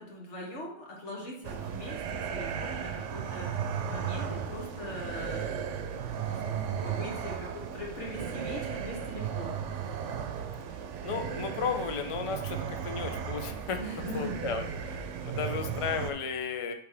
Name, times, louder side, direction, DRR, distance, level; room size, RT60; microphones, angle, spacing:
voice 1, 0.0-5.7 6.3-9.6 13.8-14.4 14.8-15.1, left 1 dB, 75° left, -2 dB, 1.7 m, -41 dB
sound 1, 1.4-16.1, right 7 dB, 85° right, 0.9 m, -35 dB
voice 2, 11.0-13.8 14.1-14.6 15.2-16.7, left 6 dB, 45° left, 7 dB, 0.4 m, -34 dB
8.3 x 3.4 x 3.3 m, 0.67 s
omnidirectional pair, 1.2 m